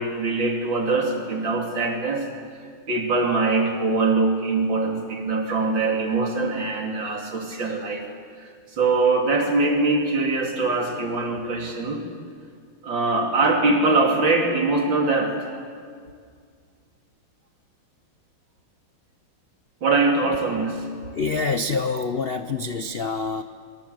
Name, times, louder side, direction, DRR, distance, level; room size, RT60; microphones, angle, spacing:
voice 1, 0.0-2.3 2.9-8.1 8.4-12.0 12.8-15.5 19.8-20.9, right 3 dB, 60° right, 2 dB, 3.6 m, -23 dB
voice 2, 21.1-23.4, left 4 dB, 80° left, 9 dB, 0.5 m, -26 dB
24.0 x 23.5 x 8.1 m, 2.1 s
omnidirectional pair, 2.3 m